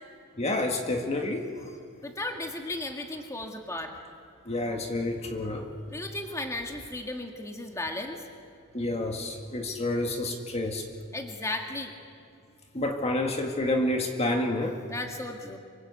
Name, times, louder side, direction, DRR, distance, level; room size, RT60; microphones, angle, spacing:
voice 1, 0.4-1.5 4.5-5.7 8.7-10.9 12.7-14.8, left 2 dB, 30° left, 3 dB, 1.9 m, -29 dB
voice 2, 2.0-3.9 5.9-8.2 11.1-11.9 14.9-15.6, left 2 dB, 15° left, 3 dB, 2.0 m, -35 dB
28.0 x 25.5 x 8.3 m, 2.3 s
head